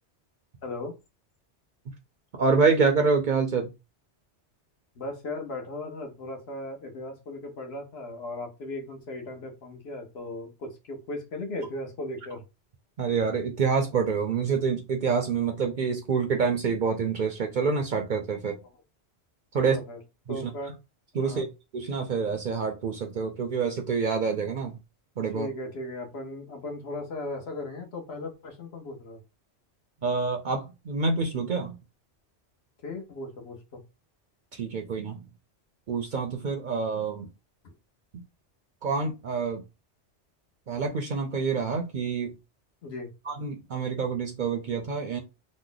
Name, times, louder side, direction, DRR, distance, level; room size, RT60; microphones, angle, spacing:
voice 1, 0.6-0.9 5.0-12.4 19.5-20.0 20.3-20.7 21.2-21.5 25.3-29.2 32.8-33.8 42.8-43.1, left 2 dB, 65° left, 1.1 m, -37 dB
voice 2, 2.3-3.7 13.0-18.6 19.5-19.8 20.3-20.7 21.1-24.8 25.2-25.5 30.0-31.8 34.5-35.2 35.9-37.3 38.8-39.6 40.7-42.3 43.3-45.2, right 5 dB, 55° right, 0.6 m, -27 dB
3.0 x 2.1 x 3.8 m
omnidirectional pair, 1.2 m